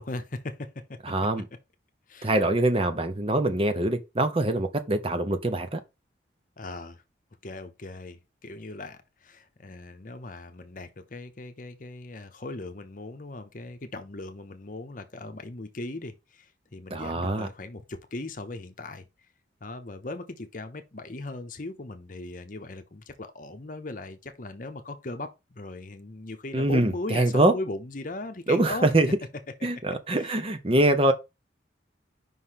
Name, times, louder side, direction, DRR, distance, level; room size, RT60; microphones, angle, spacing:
voice 1, 0.0-1.0 2.1-2.3 6.6-7.0 7.4-19.1 19.6-28.9 29.6-29.7 30.1-30.3, left 2 dB, 45° left, 0.8 m, -38 dB
voice 2, 1.0-1.5 2.2-5.8 16.9-17.5 26.5-27.5 28.5-29.1 29.6-31.1, right 1 dB, 30° right, 0.7 m, -24 dB
5.5 x 3.2 x 5.6 m
head